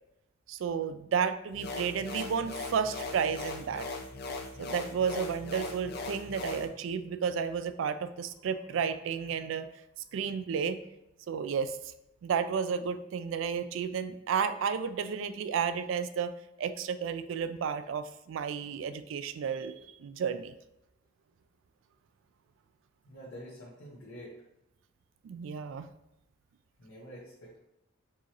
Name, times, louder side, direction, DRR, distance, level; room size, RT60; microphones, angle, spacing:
voice 1, 0.5-3.9 4.6-9.6 10.1-10.8 11.3-11.9 12.2-16.3 16.6-20.5 25.2-25.9, right 6 dB, 70° right, 11 dB, 0.3 m, -32 dB
sound 1, 1.5-6.7, left 3 dB, 55° left, 0.5 m, -39 dB
voice 2, 23.1-24.3 26.8-27.6, equal, 70° left, -8 dB, 0.9 m, -47 dB
4.6 x 2.9 x 3.0 m, 0.86 s
head